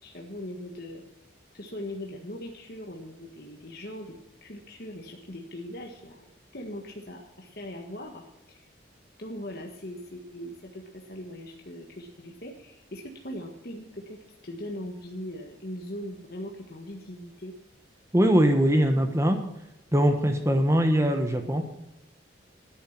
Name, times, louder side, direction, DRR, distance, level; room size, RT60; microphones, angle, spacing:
voice 1, 0.0-1.0 1.5-4.1 4.4-6.2 6.5-8.2 8.5-8.7 9.2-14.2 14.4-17.5, left 1 dB, 50° left, 0 dB, 1.6 m, -40 dB
voice 2, 18.1-19.4 19.9-21.8, equal, 15° right, 6 dB, 1.1 m, -22 dB
11.5 x 10.0 x 7.3 m, 0.90 s
head